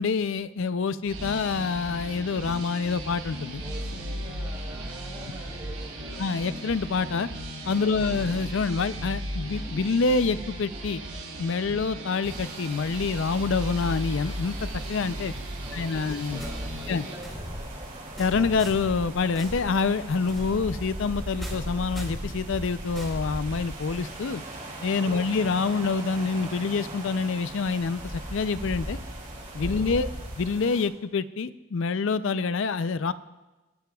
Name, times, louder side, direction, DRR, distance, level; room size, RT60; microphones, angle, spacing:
voice 1, 0.0-3.6 6.2-7.3 7.7-11.0 11.4-15.3 15.7-16.4 16.9-17.0 18.2-24.4 24.8-29.0 29.5-30.1 30.4-33.1, left 4 dB, 60° left, 14 dB, 0.4 m, -27 dB
sound 1, 1.1-17.2, right 1 dB, 80° right, 4.4 m, -36 dB
voice 2, 3.6-6.3 7.8-8.2 15.6-17.8 25.0-25.4 29.6-30.0, right 1 dB, 15° right, -3 dB, 3.6 m, -45 dB
sound 2, 12.2-30.8, right 1 dB, 35° right, 2.7 m, -39 dB
sound 3, 16.4-24.0, equal, ahead, 3.8 m, -38 dB
22.5 x 11.5 x 2.3 m, 1.2 s
head